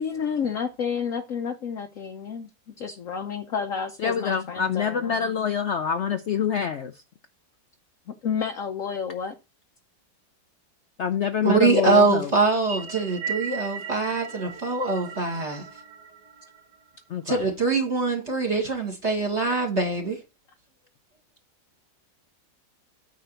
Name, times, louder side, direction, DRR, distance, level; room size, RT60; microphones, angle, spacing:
voice 1, 0.0-2.5 2.8-5.3 8.2-9.3, left 6 dB, 60° left, 0.9 m, -30 dB
voice 2, 4.0-7.0 11.0-12.3 17.1-17.4, left 7 dB, 85° left, 0.6 m, -26 dB
voice 3, 11.4-15.6 17.3-20.2, right 3 dB, 35° right, 2.0 m, -23 dB
sound 1, 12.5-17.0, right 6 dB, 60° right, 1.7 m, -37 dB
9.3 x 3.8 x 6.7 m
omnidirectional pair, 2.0 m